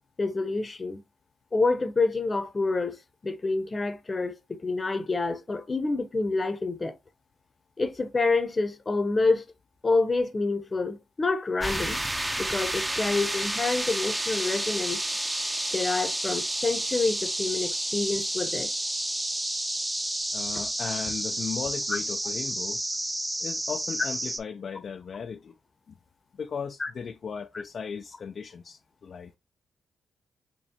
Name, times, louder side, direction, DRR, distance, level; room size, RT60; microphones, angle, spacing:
voice 1, 0.2-1.0 1.5-3.0 3.2-6.9 7.8-9.4 9.8-12.0 12.4-15.0 15.7-18.7 26.8-26.9, left 3 dB, 35° left, 0.7 m, -27 dB
sound 1, 11.6-24.4, right 1 dB, 20° right, 0.7 m, -30 dB
voice 2, 20.3-22.8 23.4-25.5 26.4-29.4, left 6 dB, 60° left, 0.3 m, -36 dB
4.3 x 3.1 x 2.7 m
supercardioid pair, 50°, 0 cm